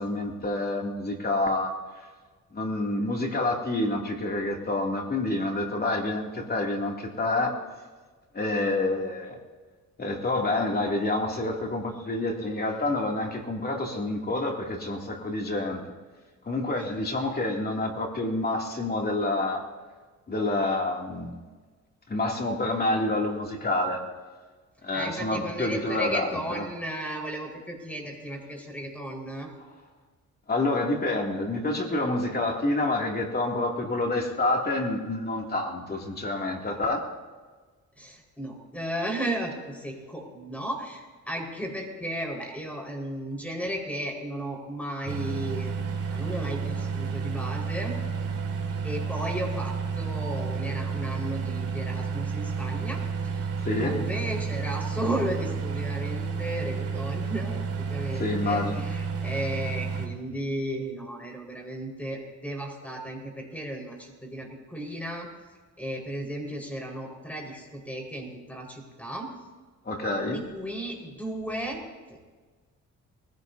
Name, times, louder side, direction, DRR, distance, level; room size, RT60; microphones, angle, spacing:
voice 1, 0.0-1.7 2.5-7.6 8.3-9.4 10.0-15.8 16.4-19.6 20.3-21.3 22.1-24.0 24.8-26.7 30.5-37.1 53.6-54.0 58.2-58.8 69.8-70.4, left 2 dB, 30° left, 1 dB, 2.6 m, -28 dB
voice 2, 24.9-29.5 38.0-45.8 46.1-47.9 48.8-53.0 53.7-57.6 57.9-65.3 65.8-69.3 70.3-71.8 72.1-72.3, right 1 dB, 5° left, 0 dB, 4.7 m, -34 dB
sound 1, 45.1-60.1, right 5 dB, 55° right, 2.3 m, -31 dB
22.0 x 16.0 x 2.7 m, 1.4 s
cardioid pair, 90°, 30 cm